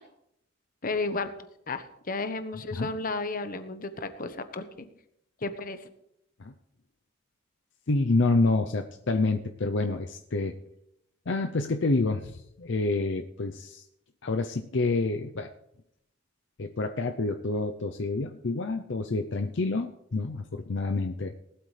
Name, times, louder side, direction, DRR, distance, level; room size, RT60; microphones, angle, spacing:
voice 1, 0.8-1.3 1.7-4.9 5.4-5.8, left 3 dB, 45° left, 9 dB, 1.1 m, -33 dB
voice 2, 7.9-10.5 11.3-13.8 14.2-15.5 16.6-21.3, left 3 dB, 65° left, 6 dB, 0.7 m, -28 dB
19.0 x 12.5 x 3.3 m, 0.80 s
head